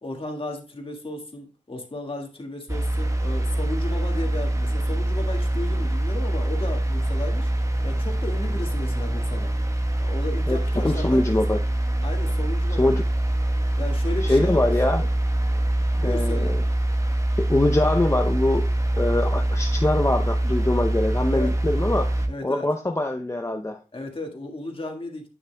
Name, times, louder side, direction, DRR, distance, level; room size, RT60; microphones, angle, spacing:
voice 1, 0.0-7.5 7.8-9.5 10.0-11.6 12.0-12.9 13.8-14.7 15.0-15.1 16.0-16.6 21.3-21.5 22.3-22.7 23.9-25.2, left 2 dB, 40° left, 1.8 m, -34 dB
sound 1, 2.7-22.3, right 1 dB, 25° right, 1.2 m, -24 dB
voice 2, 10.8-11.6 12.8-13.0 14.2-15.0 16.0-16.6 17.4-18.7 19.0-23.8, left 1 dB, 20° left, 0.7 m, -23 dB
9.6 x 6.6 x 2.3 m
wide cardioid pair, 65°, 14 cm